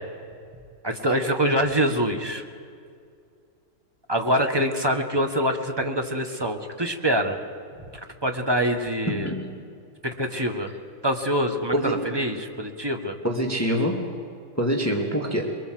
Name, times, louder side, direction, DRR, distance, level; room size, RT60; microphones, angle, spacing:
voice 1, 0.8-2.4 4.1-7.4 8.2-9.3 10.0-10.7 11.0-13.2, equal, 15° right, 4 dB, 1.3 m, -25 dB
voice 2, 9.1-9.6 11.7-12.1 13.2-14.1 14.6-15.5, equal, 5° left, 1 dB, 2.0 m, -25 dB
23.5 x 22.5 x 7.8 m, 2.3 s
omnidirectional pair, 2.4 m